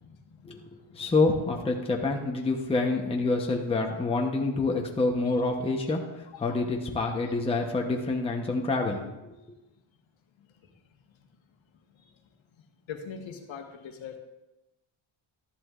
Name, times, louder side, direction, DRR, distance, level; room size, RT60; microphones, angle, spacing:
voice 1, 0.9-9.4, left 3 dB, 10° left, 1 dB, 0.8 m, -27 dB
voice 2, 12.9-14.2, left 6 dB, 65° left, 4 dB, 1.3 m, -40 dB
13.0 x 11.0 x 2.4 m, 1.0 s
cardioid pair, 170°, 49 cm